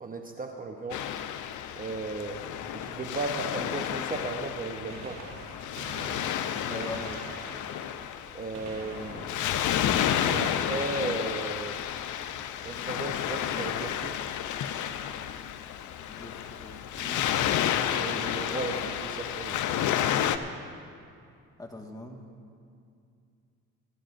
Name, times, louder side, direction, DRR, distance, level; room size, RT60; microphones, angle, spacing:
voice 1, 0.0-1.1 1.8-2.4 2.7-5.2 6.7-6.9 8.3-9.3 10.2-11.8 12.6-14.2 17.9-19.6, right 3 dB, 30° right, 3 dB, 0.9 m, -35 dB
Waves surf, 0.9-20.4, left 10 dB, 80° left, 0.6 m, -31 dB
Gunshot gunfire, 4.9-10.6 12.6-12.7 13.7-13.8 15.4-15.5 16.9-17.0 17.2-17.3, right 2 dB, 65° right, 3.4 m, -46 dB
voice 2, 6.6-7.3 16.1-17.3 21.6-22.2, left 2 dB, 10° left, 1 dB, 1.6 m, -42 dB
23.5 x 12.5 x 2.6 m, 2.4 s
cardioid pair, 90°, 30 cm